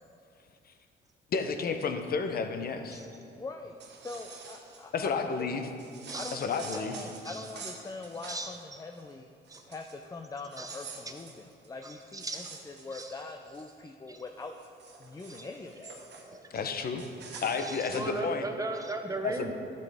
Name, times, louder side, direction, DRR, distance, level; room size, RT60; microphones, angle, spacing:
voice 1, 1.3-3.0 4.9-5.6 6.3-7.0 16.5-17.1 17.4-18.5 19.2-19.5, left 5 dB, 50° left, 7 dB, 0.8 m, -31 dB
voice 2, 3.4-5.5 6.2-9.3 9.7-14.5 15.0-16.0, left 3 dB, 20° left, 4 dB, 0.4 m, -43 dB
sound 1, 3.6-4.8 5.8-8.6 8.9-9.1 9.4-10.0 10.4-13.7 14.2-16.3 17.0-18.1, right 4 dB, 60° right, 1.3 m, -47 dB
voice 3, 6.1-6.8 7.2-7.5 8.3-8.5 9.5-9.6 10.6-10.8 11.8-12.5 12.9-13.1 14.1-14.2 15.3-15.5 16.2-16.6 17.6-19.5, right 2 dB, 15° right, 4 dB, 0.9 m, -38 dB
11.5 x 7.8 x 3.5 m, 2.5 s
cardioid pair, 90°, 20 cm